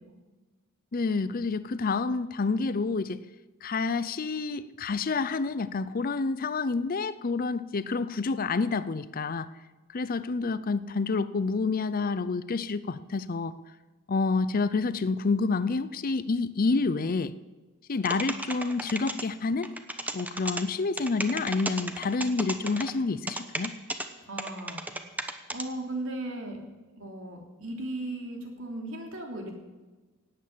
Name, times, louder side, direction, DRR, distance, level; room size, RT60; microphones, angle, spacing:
voice 1, 0.9-3.2 3.6-9.5 9.9-13.5 14.1-17.3 17.9-19.7 20.1-23.7, left 4 dB, 45° left, 15 dB, 0.5 m, -28 dB
sound 1, 18.1-19.2 19.6-20.6 21.0-22.9 23.3-24.1 24.4-25.6, right 1 dB, 10° right, 1.0 m, -33 dB
voice 2, 24.3-24.8 25.5-26.6 27.0-29.5, right 1 dB, 70° right, 1 dB, 3.3 m, -36 dB
18.0 x 8.9 x 7.4 m, 1.2 s
head